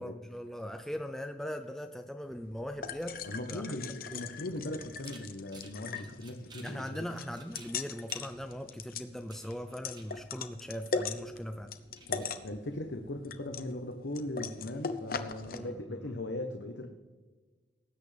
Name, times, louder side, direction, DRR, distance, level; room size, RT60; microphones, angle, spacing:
voice 1, 0.0-4.3 6.6-11.7 15.5-16.2, equal, ahead, 6 dB, 0.4 m, -40 dB
sound 1, 2.2-15.6, left 5 dB, 55° left, 0.8 m, -40 dB
voice 2, 3.3-7.1 12.1-16.9, left 1 dB, 85° left, 4 dB, 1.0 m, -39 dB
sound 2, 5.0-13.3, right 4 dB, 25° right, 1.3 m, -58 dB
19.5 x 8.7 x 3.4 m, 1.3 s
head